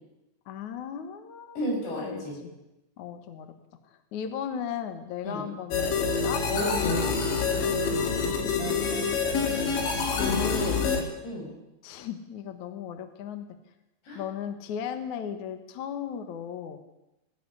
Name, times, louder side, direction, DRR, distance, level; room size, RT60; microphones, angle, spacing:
voice 1, 0.5-1.6 1.9-2.5 3.0-3.5 3.9-6.4 8.4-9.2 10.1-10.8 11.8-13.5 14.1-16.8, left 8 dB, 60° left, 8 dB, 2.3 m, -36 dB
voice 2, 1.6-2.4 5.2-5.4 6.5-7.2 11.2-11.5 14.0-14.2, left 1 dB, 75° left, 0 dB, 8.9 m, -32 dB
sound 1, 5.7-11.0, left 5 dB, 90° left, 5.0 m, -26 dB
20.0 x 15.5 x 9.9 m, 0.95 s
omnidirectional pair, 5.0 m